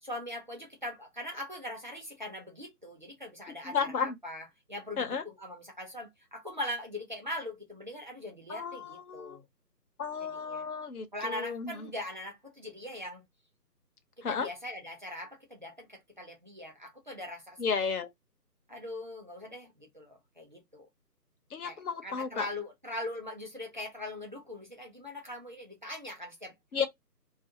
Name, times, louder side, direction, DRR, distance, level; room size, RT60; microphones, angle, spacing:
voice 1, 0.0-9.4 10.2-10.7 11.1-13.3 14.2-17.6 18.7-20.9 21.6-26.5, left 1 dB, 30° right, 0.6 m, -41 dB
voice 2, 3.6-4.2 5.0-5.2 8.5-9.4 10.0-11.9 14.2-14.5 17.6-18.1 21.5-22.5 26.7-26.9, left 6 dB, 65° left, 0.7 m, -33 dB
2.4 x 2.3 x 2.6 m
figure-of-eight pair, 150°, 48 cm